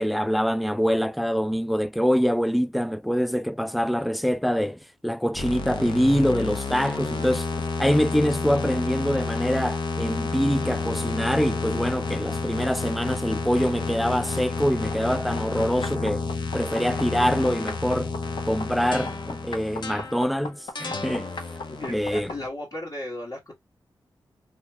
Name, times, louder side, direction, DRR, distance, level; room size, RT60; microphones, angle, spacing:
voice 1, 0.0-7.5 7.8-16.2 16.5-18.1 18.4-21.3 21.9-22.3, equal, ahead, 0.3 m, -25 dB
sound 1, 5.3-22.5, left 4 dB, 60° left, 0.8 m, -30 dB
voice 2, 21.7-23.5, left 1 dB, 45° left, 1.5 m, -35 dB
2.8 x 2.3 x 2.7 m
cardioid pair, 45°, 9 cm